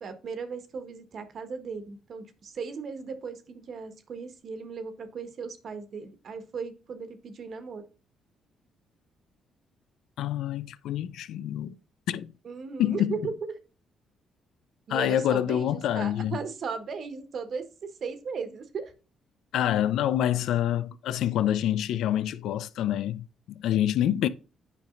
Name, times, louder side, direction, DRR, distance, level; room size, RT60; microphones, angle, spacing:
voice 1, 0.0-7.8 12.4-13.3 14.9-18.9, right 5 dB, 55° right, 1.3 m, -37 dB
voice 2, 10.2-11.7 12.1-12.3 12.8-13.1 14.9-16.4 19.5-24.3, left 11 dB, 80° left, 0.5 m, -27 dB
9.2 x 5.2 x 2.5 m
cardioid pair, 90°, 0 cm